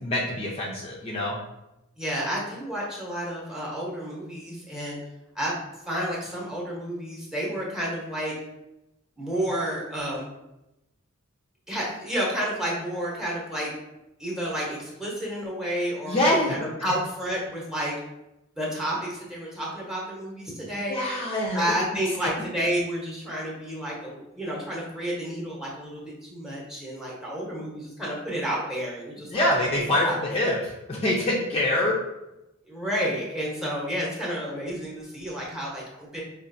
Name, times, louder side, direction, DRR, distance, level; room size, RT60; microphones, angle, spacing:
voice 1, 0.0-1.4 16.1-16.5 20.9-21.6 21.9-22.0 29.3-32.0, left 1 dB, 30° left, -4 dB, 0.5 m, -25 dB
voice 2, 2.0-5.0 5.3-5.6 5.9-8.3 9.2-10.3 11.7-13.7 14.2-17.9 18.6-21.0 21.5-29.5 29.9-30.2 32.7-36.2, equal, 5° right, -4 dB, 0.9 m, -30 dB
4.9 x 2.5 x 2.6 m, 0.92 s
head